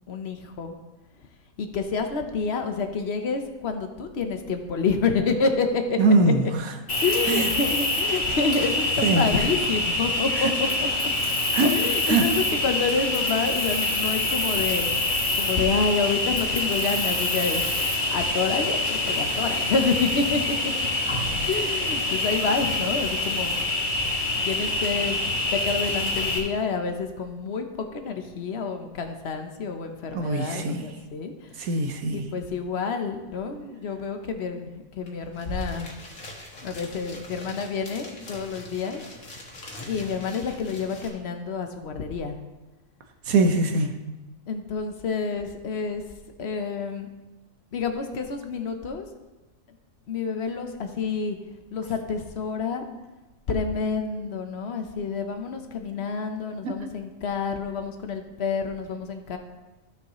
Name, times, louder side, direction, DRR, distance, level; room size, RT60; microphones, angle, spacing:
voice 1, 0.1-0.8 1.6-6.0 7.0-10.9 11.7-17.7 18.1-20.6 21.4-23.6 24.4-25.2 25.5-31.7 32.1-35.9 36.6-39.0 39.9-42.4 44.5-46.0 46.4-47.1 47.7-49.1 50.1-51.4 51.7-52.8 53.5-59.4, left 4 dB, 55° left, 6 dB, 1.1 m, -28 dB
voice 2, 6.0-6.7 7.3-7.5 9.0-9.3 10.4-10.5 11.5-11.8 12.0-12.2 30.1-30.9 31.6-32.2 43.3-44.0 56.6-56.7, right 2 dB, 85° right, 5 dB, 1.4 m, -22 dB
Cricket, 6.9-26.4, left 2 dB, 35° left, 1.9 m, -26 dB
sound 1, 35.1-35.2 35.3-41.1, left 1 dB, 80° left, 2.0 m, -40 dB
15.5 x 5.6 x 3.1 m, 1.1 s
omnidirectional pair, 1.4 m